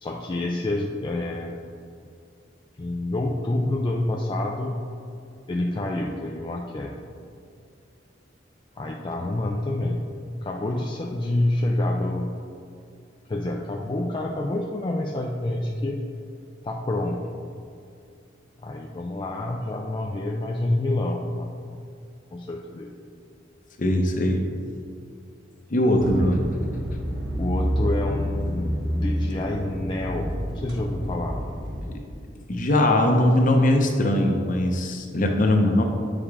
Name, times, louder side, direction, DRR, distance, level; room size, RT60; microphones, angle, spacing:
voice 1, 0.0-1.6 2.8-4.9 5.5-7.1 8.8-10.0 10.4-12.4 13.3-16.0 16.6-17.2 18.6-21.5 22.3-22.9 27.4-31.4, left 1 dB, 25° left, -1 dB, 0.4 m, -28 dB
voice 2, 23.8-24.4 25.7-26.4 32.5-35.8, left 1 dB, 45° left, 3 dB, 0.7 m, -20 dB
sound 1, 25.9-31.9, equal, 60° right, 1.2 m, -28 dB
8.3 x 4.9 x 3.5 m, 2.4 s
head